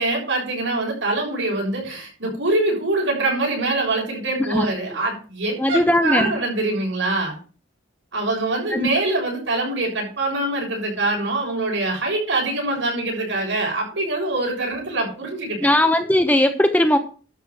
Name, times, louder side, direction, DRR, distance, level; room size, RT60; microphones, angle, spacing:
voice 1, 0.0-7.4 8.1-15.7, right 2 dB, 75° right, 0 dB, 6.8 m, -24 dB
voice 2, 5.6-6.3 8.7-8.9 15.6-17.0, left 1 dB, 10° left, 6 dB, 1.0 m, -18 dB
12.0 x 5.9 x 6.0 m, 0.38 s
head